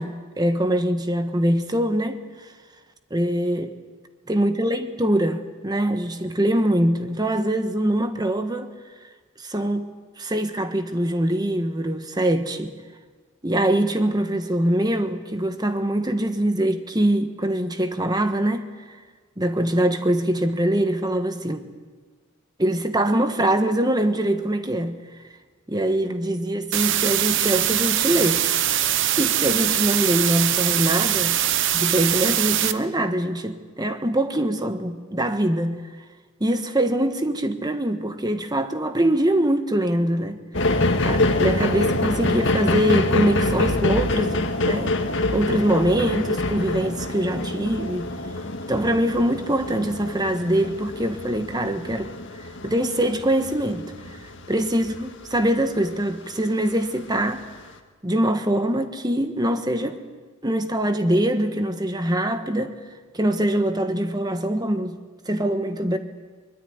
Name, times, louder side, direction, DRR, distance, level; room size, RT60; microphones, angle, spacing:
voice 1, 0.0-2.2 3.1-3.7 4.3-8.7 9.4-9.9 10.2-12.8 13.4-18.7 19.4-21.6 22.6-25.0 25.7-28.5 29.2-31.4 31.7-35.8 36.4-40.4 41.0-45.0 45.3-48.1 48.7-52.1 52.4-53.9 54.5-57.4 58.0-60.0 60.4-62.7 63.1-64.9 65.2-66.0, right 1 dB, 20° right, 1.4 m, -23 dB
sound 1, 26.7-32.7, right 11 dB, 60° right, 1.0 m, -22 dB
sound 2, 40.5-56.1 56.7-56.8, left 2 dB, 60° left, 1.8 m, -26 dB
23.5 x 21.5 x 9.5 m
head